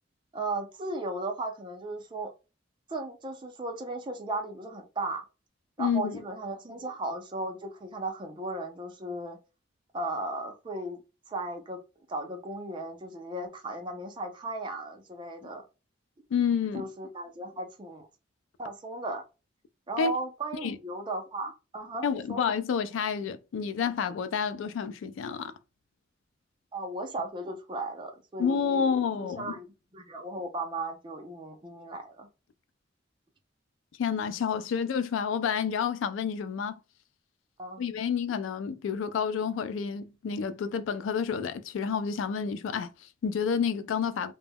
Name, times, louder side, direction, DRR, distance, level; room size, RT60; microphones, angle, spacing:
voice 1, 0.3-2.3 2.9-5.2 5.8-9.4 9.9-11.0 11.3-11.8 12.1-15.6 16.7-18.1 18.6-19.2 19.9-22.0 22.3-22.4 26.7-29.7 29.9-32.3 37.6-37.8, right 2 dB, 25° right, 0.5 m, -36 dB
voice 2, 5.8-6.2 15.4-15.5 16.3-16.9 20.0-20.1 20.6-20.8 22.0-25.5 28.4-29.5 34.0-36.7 37.8-44.3, left 6 dB, 85° left, 0.3 m, -29 dB
2.2 x 2.0 x 3.4 m
head